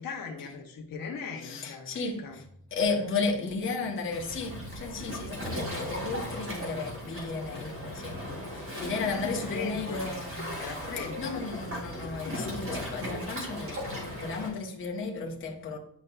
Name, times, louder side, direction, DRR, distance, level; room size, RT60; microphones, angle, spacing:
voice 1, 0.0-1.9 2.2-2.4 9.2-10.1 10.6-11.4 12.2-12.4, left 5 dB, 45° left, 1.2 m, -38 dB
voice 2, 1.4-8.2 8.5-10.6 11.2-15.8, left 4 dB, 25° left, 1.0 m, -34 dB
Waves surf, 4.1-14.5, equal, 30° right, 2.7 m, -37 dB
9.5 x 5.3 x 2.3 m
cardioid pair, 165°, 45 cm